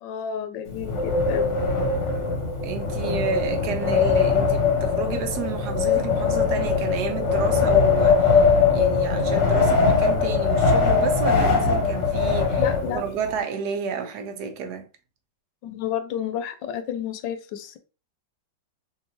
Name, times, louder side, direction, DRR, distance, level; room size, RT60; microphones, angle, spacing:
voice 1, 0.0-1.5 12.6-13.0 15.6-17.8, left 9 dB, 90° left, 1.3 m, -31 dB
Wind, 0.7-13.3, left 5 dB, 50° left, 1.0 m, -21 dB
voice 2, 2.6-14.9, right 6 dB, 75° right, 1.1 m, -31 dB
3.7 x 2.8 x 2.7 m
omnidirectional pair, 1.9 m